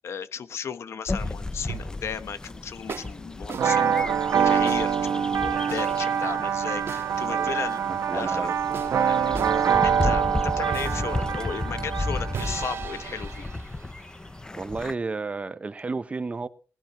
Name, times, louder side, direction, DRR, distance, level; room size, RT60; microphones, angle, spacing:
voice 1, 0.0-4.0 4.4-7.8 8.1-8.5 9.0-13.5, left 7 dB, 65° left, 1.3 m, -35 dB
sound 1, 1.1-14.9, left 2 dB, 15° left, 0.6 m, -34 dB
sound 2, 1.2-2.1 2.9-3.2 3.5-3.7 4.7-4.9 5.7-6.0 6.9-7.1 8.7-9.0 9.3-9.6 10.7-11.1 12.3-14.4, right 6 dB, 55° right, 1.6 m, -38 dB
sound 3, 3.5-13.1, right 7 dB, 75° right, 1.6 m, -25 dB
voice 2, 7.3-8.5 14.5-16.5, right 3 dB, 25° right, 0.9 m, -32 dB
19.5 x 16.0 x 3.2 m
wide cardioid pair, 145°, 5 cm